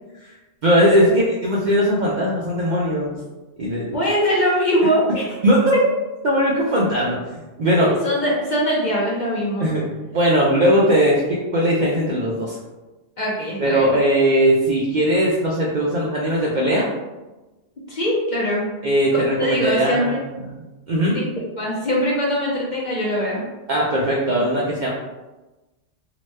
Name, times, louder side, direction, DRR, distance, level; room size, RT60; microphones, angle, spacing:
voice 1, 0.6-3.2 3.6-3.9 5.4-5.8 6.2-7.9 9.6-9.9 10.1-12.6 13.6-16.9 18.8-20.1 20.5-20.6 20.9-21.2 23.7-24.9, equal, 60° right, -5 dB, 0.5 m, -19 dB
voice 2, 3.8-5.3 7.8-9.7 13.2-13.9 17.9-18.6 19.4-20.2 21.1-23.4 24.3-24.4, equal, 55° left, -4 dB, 0.6 m, -22 dB
2.9 x 2.1 x 3.1 m, 1.1 s
omnidirectional pair, 1.2 m